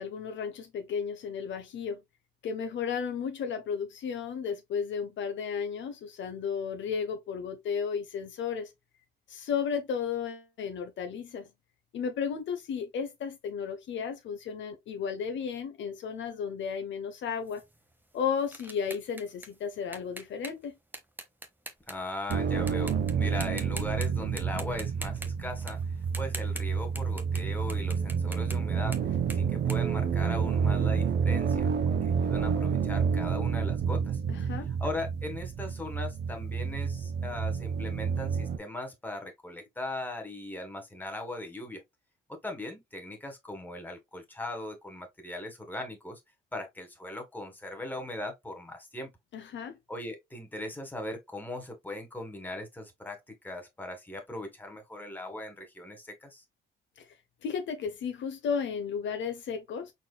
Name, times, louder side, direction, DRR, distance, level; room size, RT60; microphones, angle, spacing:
voice 1, 0.0-2.0 2.4-8.7 9.3-11.5 11.9-17.6 18.1-20.7 34.3-34.7 49.3-49.8 57.0-57.1 57.4-59.9, left 6 dB, 70° left, 0.9 m, -34 dB
sound 1, 17.5-22.3 22.7-23.1 23.4-24.1 24.4-27.4 27.7-30.7, right 1 dB, 10° right, 0.8 m, -44 dB
voice 2, 21.9-25.8 26.2-31.7 32.0-34.5 34.8-41.8 42.3-46.2 46.5-49.1 49.9-56.4, left 1 dB, 10° left, 1.6 m, -39 dB
sound 2, 22.3-38.6, right 6 dB, 60° right, 0.8 m, -29 dB
4.3 x 4.3 x 2.2 m
cardioid pair, 90°, 20 cm